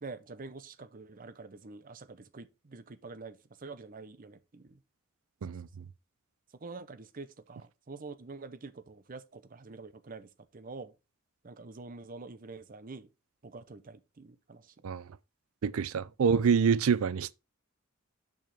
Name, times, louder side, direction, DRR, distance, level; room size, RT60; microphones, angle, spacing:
voice 1, 0.0-4.8 5.5-5.9 6.5-10.9 11.4-13.1 13.4-14.8 16.0-16.1, right 3 dB, 40° right, 0.6 m, -46 dB
voice 2, 15.6-17.3, right 6 dB, 85° right, 0.4 m, -26 dB
6.4 x 6.3 x 3.3 m
head